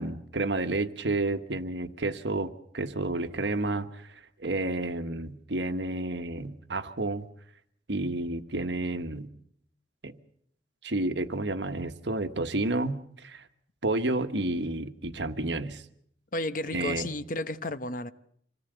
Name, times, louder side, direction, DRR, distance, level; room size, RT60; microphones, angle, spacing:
voice 1, 0.0-7.3 7.9-9.3 10.0-10.2 10.8-13.4 13.8-15.8 16.7-17.1, right 2 dB, 75° right, 1.4 m, -30 dB
voice 2, 16.3-18.1, left 2 dB, 45° left, 0.9 m, -32 dB
26.5 x 17.5 x 8.0 m
head